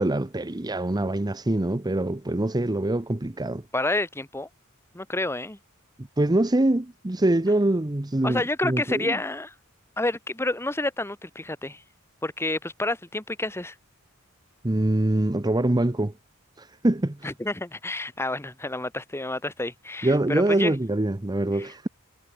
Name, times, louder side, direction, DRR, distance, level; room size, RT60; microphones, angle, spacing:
voice 1, 0.0-3.6 6.0-9.2 14.6-16.1 16.6-17.3 20.0-21.9, right 1 dB, 20° right, 0.8 m, -24 dB
voice 2, 3.7-4.5 4.9-5.6 8.2-9.5 10.0-11.8 12.2-13.7 17.2-20.7 21.6-21.7, left 2 dB, 10° left, 1.4 m, -29 dB
head